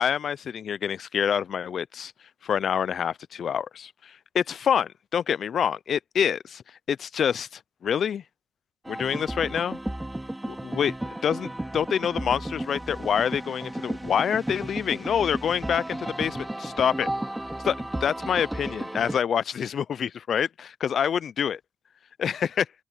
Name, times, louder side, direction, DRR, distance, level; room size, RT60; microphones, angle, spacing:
voice 1, 0.0-2.1 2.4-6.6 6.9-8.2 8.9-9.8 10.4-11.0 11.2-17.1 17.6-21.6 22.2-22.7, left 8 dB, 55° left, 0.5 m, -26 dB
sound 1, 8.8-19.2, right 1 dB, 10° right, 3.7 m, -34 dB
cardioid pair, 90°, 0 cm